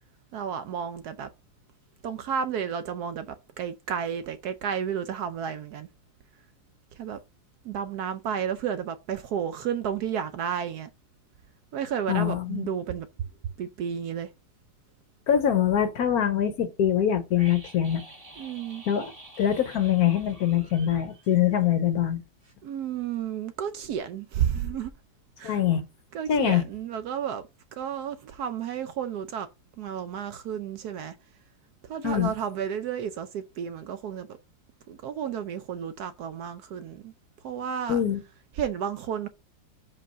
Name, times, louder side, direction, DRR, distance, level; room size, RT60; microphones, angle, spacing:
voice 1, 0.3-1.3 2.0-5.9 6.9-7.2 7.6-10.9 11.7-13.3 13.6-14.3 18.4-18.8 22.6-24.9 25.4-25.6 26.1-29.5 29.8-31.2 31.8-34.4 34.9-37.1 37.4-38.0 38.5-39.3, right 8 dB, 70° right, 1.0 m, -32 dB
voice 2, 12.1-12.7 15.3-18.0 18.9-19.1 19.4-22.2 25.4-25.8 26.3-26.6 32.0-32.3 37.9-38.2, left 10 dB, 65° left, 1.0 m, -24 dB
sound 1, 17.3-22.2 22.4-22.5, right 1 dB, 20° right, 1.9 m, -49 dB
5.0 x 4.6 x 5.4 m
omnidirectional pair, 2.0 m